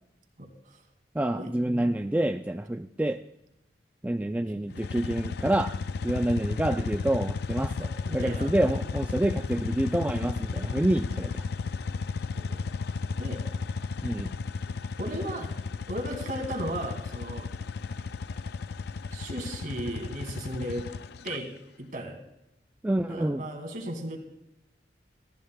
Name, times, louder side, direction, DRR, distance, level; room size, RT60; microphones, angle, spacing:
voice 1, 0.4-0.8 1.4-1.9 4.4-4.8 7.8-8.8 12.3-12.6 13.2-13.4 15.0-15.5 15.9-17.5 19.1-20.8 21.2-21.5 21.8-22.2 23.1-24.2, right 1 dB, 50° right, 4 dB, 2.2 m, -36 dB
voice 2, 1.2-3.2 4.0-5.7 6.0-7.9 8.1-11.4 14.0-14.3 22.8-23.4, right 1 dB, 10° right, 6 dB, 0.3 m, -27 dB
sound 1, 4.7-21.4, left 4 dB, 65° left, 0.4 m, -34 dB
19.5 x 14.5 x 2.2 m, 0.86 s
head